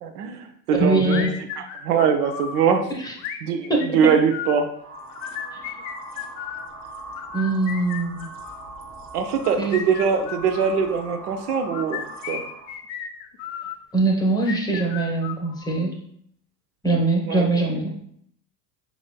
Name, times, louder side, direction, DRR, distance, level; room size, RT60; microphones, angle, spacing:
voice 1, 0.0-2.9 3.4-4.7 9.1-12.4 17.3-17.5, right 7 dB, 70° right, 6 dB, 0.6 m, -22 dB
voice 2, 0.8-1.4 3.0-3.1 3.7-4.1 7.3-8.3 9.6-9.7 13.9-15.9 16.8-17.9, right 2 dB, 10° left, 0 dB, 0.8 m, -22 dB
sound 1, 1.1-2.6 3.2-4.6 5.1-6.7 7.2-8.7 9.3-10.8 11.5-13.8 14.4-15.8, left 8 dB, 50° left, 0.6 m, -34 dB
sound 2, 4.7-12.8, right 1 dB, 25° right, 0.7 m, -40 dB
5.2 x 3.0 x 2.2 m, 0.67 s
figure-of-eight pair, 70°, 50 cm